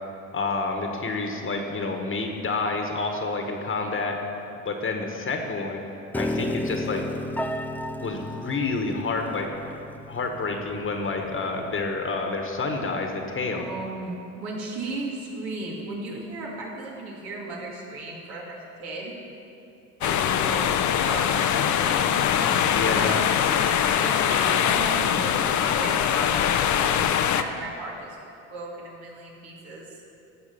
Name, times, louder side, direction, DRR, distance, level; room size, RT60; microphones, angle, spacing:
voice 1, 0.3-4.2 4.6-5.8 6.1-7.0 8.0-9.5 10.1-13.7 22.7-23.2, left 3 dB, 35° left, 3 dB, 1.4 m, -29 dB
Piano, 6.1-12.3, left 1 dB, 5° left, 0.5 m, -34 dB
voice 2, 13.5-19.2 20.0-20.8 21.1-23.1 23.9-28.2 28.5-29.9, right 2 dB, 75° right, -3 dB, 2.5 m, -36 dB
sound 1, 20.0-27.4, left 9 dB, 50° left, 0.7 m, -22 dB
14.5 x 4.9 x 6.8 m, 2.8 s
supercardioid pair, 75°, 37 cm